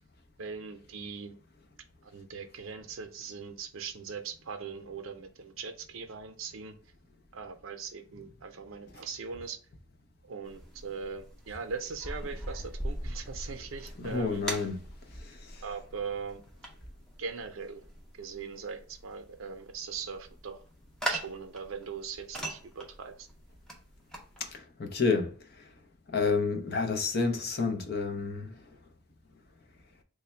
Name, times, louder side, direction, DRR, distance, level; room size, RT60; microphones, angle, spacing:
voice 1, 0.4-1.4 2.0-6.8 7.3-9.6 10.2-14.4 15.6-16.4 17.2-17.8 18.2-20.6 21.1-23.3, right 5 dB, 85° right, 0.6 m, -40 dB
hair dryer, 10.5-24.6, right 1 dB, 5° left, 0.5 m, -41 dB
voice 2, 14.0-14.8 15.2-15.4 24.4-25.3 26.1-28.5, left 4 dB, 50° left, 0.5 m, -29 dB
3.3 x 2.2 x 4.2 m
head